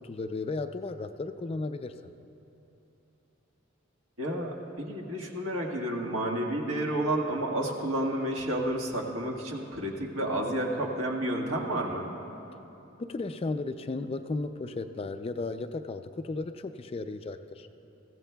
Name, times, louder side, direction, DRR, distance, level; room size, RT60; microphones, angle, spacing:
voice 1, 0.0-2.1 13.0-17.7, left 3 dB, 30° left, 9 dB, 0.3 m, -35 dB
voice 2, 4.2-12.1, right 1 dB, 70° right, -1 dB, 1.6 m, -31 dB
22.0 x 15.5 x 2.3 m, 2.9 s
head